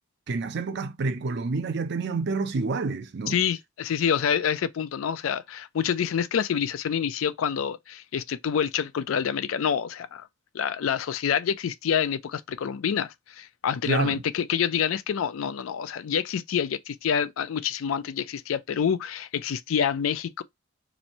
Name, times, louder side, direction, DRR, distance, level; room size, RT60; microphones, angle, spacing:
voice 1, 0.3-3.4 13.9-14.2, right 3 dB, 55° right, 0.5 m, -28 dB
voice 2, 3.3-10.3 10.5-20.4, left 8 dB, 85° left, 0.4 m, -27 dB
3.0 x 2.6 x 4.0 m
head